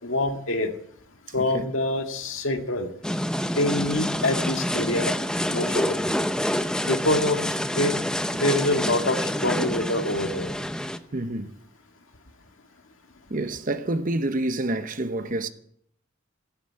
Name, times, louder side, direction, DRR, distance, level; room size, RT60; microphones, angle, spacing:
voice 1, 0.0-0.7 1.3-2.9 3.6-5.1 5.5-6.1 6.8-7.4 7.8-7.9 8.3-10.5, left 1 dB, 70° left, 2.0 m, -25 dB
sound 1, 3.0-11.0, equal, 5° left, 0.7 m, -27 dB
voice 2, 11.1-11.5 13.3-15.5, right 2 dB, 40° right, 0.9 m, -28 dB
15.0 x 12.0 x 7.6 m
head